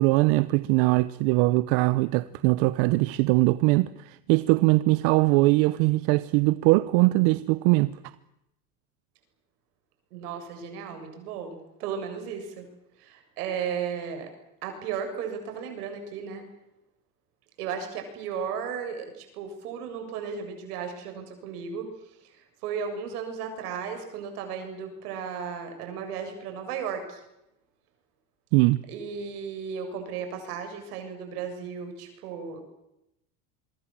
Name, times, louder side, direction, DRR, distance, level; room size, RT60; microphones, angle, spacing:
voice 1, 0.0-7.9 28.5-28.8, right 21 dB, 65° right, 1.0 m, -21 dB
voice 2, 10.1-12.7 13.0-14.3 14.6-16.5 17.6-27.2 28.9-32.6, right 7 dB, 85° right, 7.4 m, -35 dB
26.0 x 23.0 x 7.6 m
supercardioid pair, 115°, 45 cm